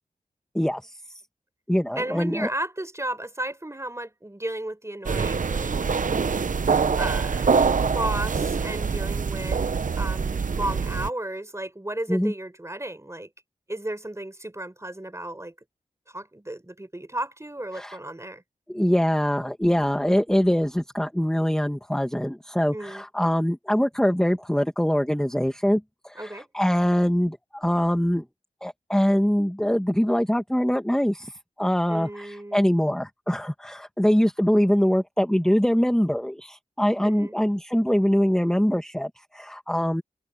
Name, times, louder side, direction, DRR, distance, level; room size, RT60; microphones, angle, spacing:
voice 1, 0.5-1.2 1.7-2.5 12.1-12.3 17.7-18.0 18.7-28.2 28.6-31.3 31.6-40.0, equal, 5° left, 1.8 m, -23 dB
voice 2, 2.0-5.7 6.8-7.6 7.9-9.6 10.0-13.3 13.7-15.5 16.1-18.4 22.7-23.0 26.2-26.5 31.9-32.7 37.0-37.3, right 1 dB, 20° right, 5.6 m, -34 dB
sound 1, 5.0-11.1, right 5 dB, 60° right, 0.8 m, -24 dB
cardioid pair, 55°, 15 cm